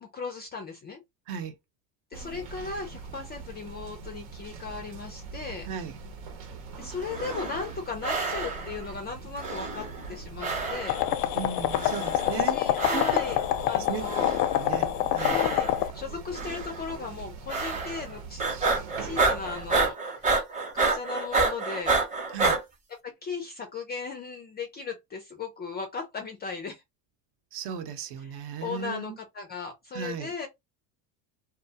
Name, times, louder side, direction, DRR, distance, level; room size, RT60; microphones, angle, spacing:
voice 1, 0.0-1.0 2.1-5.7 6.8-11.0 12.2-13.4 13.7-14.3 15.1-18.5 19.0-20.3 20.7-22.0 23.0-26.8 28.2-28.3 28.6-30.5, left 5 dB, 25° left, 0.3 m, -37 dB
sound 1, 2.1-19.9, right 4 dB, 80° right, 1.0 m, -42 dB
sound 2, 7.0-7.7 8.0-8.8 9.4-10.2 10.4-11.2 11.7-12.4 12.8-13.4 14.0-14.7 15.2-15.9 16.3-16.8 17.5-18.1 18.4-22.6, right 3 dB, 15° right, 0.7 m, -29 dB
sound 3, 10.9-15.9, left 13 dB, 80° left, 0.5 m, -26 dB
voice 2, 11.3-12.6 12.9-13.0 13.7-14.3 14.6-15.4 22.3-22.6 27.5-29.1 29.9-30.3, right 7 dB, 55° right, 0.8 m, -36 dB
2.3 x 2.2 x 2.7 m
supercardioid pair, 110°, 48 cm